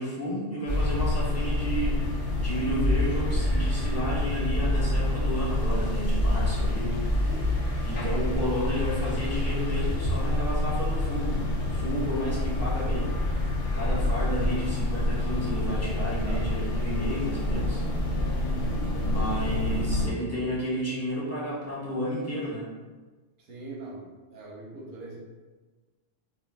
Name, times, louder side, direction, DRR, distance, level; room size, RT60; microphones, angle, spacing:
voice 1, 0.0-7.3 7.8-17.8 18.2-18.4 19.0-22.7, equal, 15° left, -8 dB, 0.7 m, -32 dB
sound 1, 0.7-20.1, left 1 dB, 60° left, 0.7 m, -27 dB
voice 2, 7.1-7.5 16.2-16.5 18.4-18.9 23.4-25.2, right 2 dB, 55° right, -4 dB, 0.7 m, -41 dB
2.5 x 2.1 x 3.3 m, 1.3 s
omnidirectional pair, 1.3 m